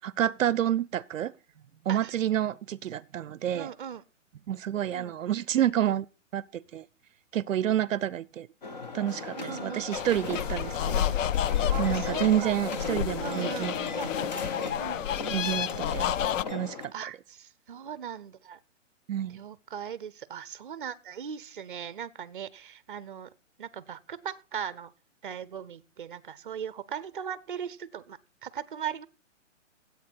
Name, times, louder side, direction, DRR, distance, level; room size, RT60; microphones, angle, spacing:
voice 1, 0.0-1.3 1.9-3.7 4.5-6.0 6.3-6.8 7.3-8.5 8.9-11.1 11.8-13.8 15.3-16.0 16.5-16.8 19.1-19.4, right 11 dB, 80° right, 0.6 m, -29 dB
voice 2, 3.5-4.0 4.9-5.1 5.7-6.0 9.4-9.8 11.7-12.6 13.2-15.2 16.9-18.6 19.3-23.3 23.6-24.9 25.2-29.0, right 8 dB, 45° right, 0.6 m, -39 dB
sound 1, 8.6-16.9, left 4 dB, 35° left, 1.1 m, -37 dB
sound 2, 9.9-16.4, left 10 dB, 80° left, 0.6 m, -30 dB
13.5 x 8.3 x 4.4 m
hypercardioid pair, 180°, 38 cm